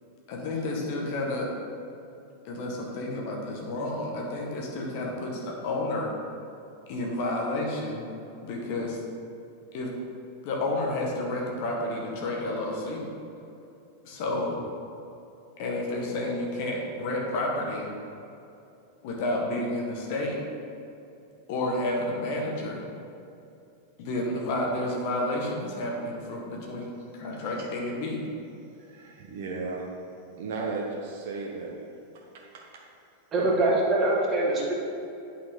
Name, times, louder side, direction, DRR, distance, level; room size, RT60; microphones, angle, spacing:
voice 1, 0.3-1.5 2.4-6.1 6.9-8.1 8.4-9.0 9.7-9.9 10.4-13.1 14.0-14.5 15.6-17.9 19.0-20.4 21.5-22.8 24.0-28.2, left 1 dB, 45° left, -1 dB, 1.5 m, -30 dB
voice 2, 28.8-30.0 30.4-31.9 32.5-32.6 33.4-33.5, right 4 dB, 50° right, -1 dB, 0.9 m, -35 dB
voice 3, 33.3-34.7, right 2 dB, 25° right, -3 dB, 1.6 m, -23 dB
8.4 x 5.9 x 3.8 m, 2.7 s
figure-of-eight pair, 90°, 0 cm